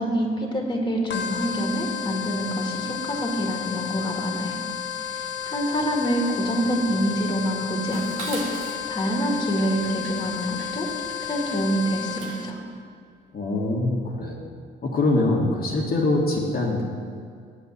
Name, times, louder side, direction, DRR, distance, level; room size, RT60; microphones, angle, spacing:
voice 1, 0.0-4.6 5.0-10.9 11.2-12.6, equal, 20° left, 0 dB, 2.0 m, -26 dB
sound 1, 1.1-12.5, left 8 dB, 65° left, 1.0 m, -32 dB
Dishes pots and pans, 7.9-12.6, right 4 dB, 90° right, 1.4 m, -41 dB
voice 2, 13.3-14.4 14.8-16.8, left 2 dB, 50° left, -3 dB, 1.6 m, -23 dB
8.4 x 8.3 x 6.7 m, 2.2 s
cardioid pair, 90°, 20 cm